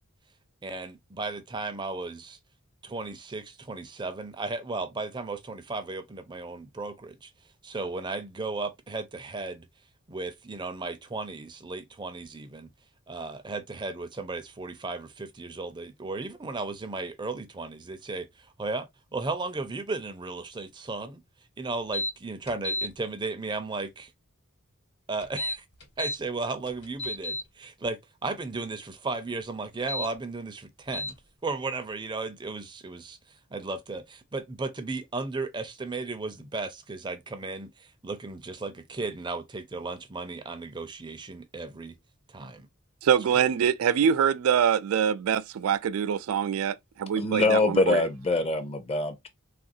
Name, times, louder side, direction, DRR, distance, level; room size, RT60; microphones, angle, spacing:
voice 1, 0.6-2.4 2.8-7.3 7.6-9.7 10.1-12.7 13.1-21.2 21.6-24.1 25.1-25.6 26.0-31.2 31.4-33.2 33.5-42.0 42.3-42.7 43.4-43.5, right 3 dB, 20° right, 0.5 m, -35 dB
sound 1, 21.9-22.1 22.5-22.9 25.2-26.2 26.7-27.4 29.7-30.1 30.9-31.1, left 2 dB, 55° left, 1.2 m, -31 dB
voice 2, 43.0-48.0, right 8 dB, 80° right, 0.3 m, -24 dB
voice 3, 47.2-49.3, left 2 dB, 30° left, 0.6 m, -24 dB
3.5 x 2.5 x 2.6 m
head